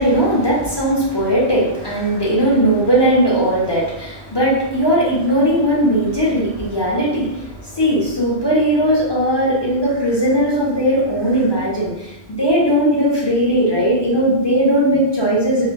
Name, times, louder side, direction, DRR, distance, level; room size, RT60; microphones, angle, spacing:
voice 1, 0.0-7.5 7.7-15.7, equal, 35° left, -6 dB, 0.4 m, -18 dB
3.1 x 2.2 x 2.2 m, 0.91 s
omnidirectional pair, 1.3 m